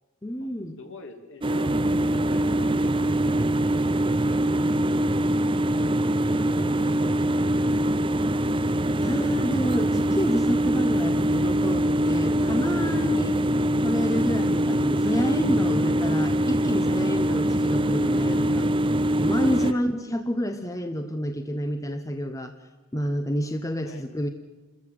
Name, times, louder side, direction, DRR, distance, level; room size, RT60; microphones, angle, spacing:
voice 1, 0.2-0.8 9.0-13.4 13.8-18.7 19.2-22.5 22.9-24.3, equal, 15° left, 7 dB, 0.9 m, -29 dB
voice 2, 0.8-1.8 2.1-4.6 6.2-7.0 19.6-19.8 23.8-24.1, left 2 dB, 60° left, 5 dB, 2.7 m, -46 dB
sound 1, 1.4-19.7, right 1 dB, 20° right, 0.6 m, -23 dB
28.5 x 14.0 x 7.8 m, 1.2 s
head